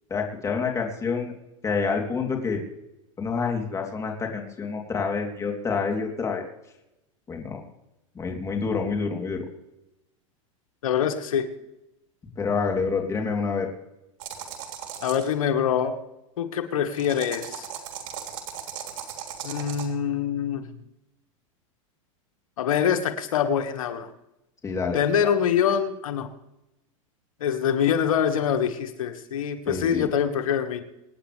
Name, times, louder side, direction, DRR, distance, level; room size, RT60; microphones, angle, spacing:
voice 1, 0.1-1.3 1.6-2.6 3.2-6.4 7.3-7.6 8.1-9.4 12.4-13.7 24.6-25.0 29.7-30.1, left 5 dB, 20° left, 1 dB, 3.2 m, -27 dB
voice 2, 10.8-11.5 15.0-16.0 16.4-17.7 19.4-20.8 22.6-24.1 24.9-26.3 27.4-30.8, left 8 dB, 85° left, 7 dB, 1.7 m, -24 dB
sound 1, 14.2-15.3 16.9-19.9, right 9 dB, 75° right, 3.3 m, -37 dB
26.0 x 9.7 x 3.4 m, 0.92 s
supercardioid pair, 125°, 17 cm